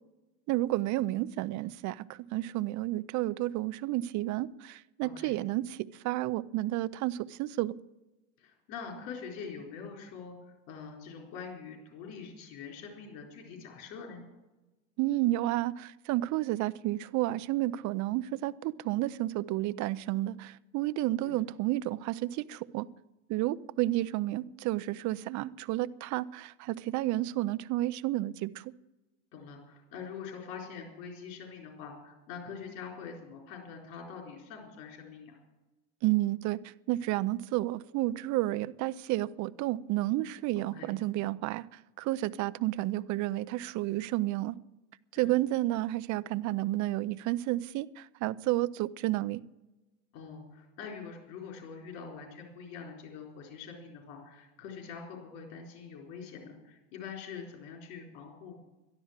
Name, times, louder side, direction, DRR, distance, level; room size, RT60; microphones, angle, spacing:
voice 1, 0.5-7.8 15.0-22.9 23.3-28.7 36.0-44.6 45.1-49.4, right 16 dB, 50° right, 0.6 m, -31 dB
voice 2, 5.0-5.4 8.4-10.3 10.7-14.2 21.2-21.4 29.3-35.4 40.5-40.9 45.2-45.4 50.1-58.6, left 6 dB, 60° left, 4.2 m, -44 dB
12.5 x 12.0 x 7.3 m
supercardioid pair, 105°, 37 cm